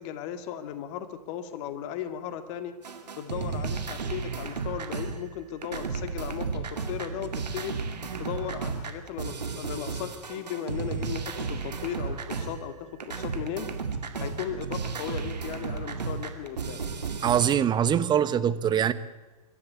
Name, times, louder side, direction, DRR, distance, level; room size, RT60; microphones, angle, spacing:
voice 1, 0.0-2.7 3.2-7.7 8.2-13.7 14.2-16.8, left 9 dB, 45° left, 9 dB, 2.2 m, -36 dB
sound 1, 2.8-5.4 5.6-12.8 13.0-17.5, right 5 dB, 85° right, 2.3 m, -34 dB
voice 2, 17.2-18.9, right 9 dB, 20° right, 14 dB, 1.0 m, -23 dB
24.0 x 12.5 x 8.6 m, 1.1 s
hypercardioid pair, 110°, 20 cm